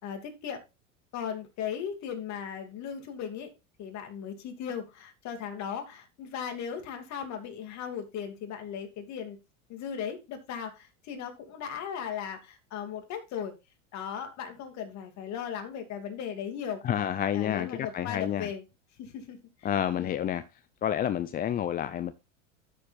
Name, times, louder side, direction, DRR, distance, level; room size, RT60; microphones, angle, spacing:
voice 1, 0.0-0.6 1.1-3.5 3.8-9.4 9.7-10.7 11.1-13.5 13.9-16.8 17.3-18.6 19.0-19.4 20.0-20.1, left 8 dB, 45° left, 2.7 m, -37 dB
voice 2, 16.8-18.5 19.6-20.4 20.8-22.1, left 10 dB, 25° left, 0.5 m, -29 dB
13.0 x 7.0 x 2.6 m
hypercardioid pair, 105°, 39 cm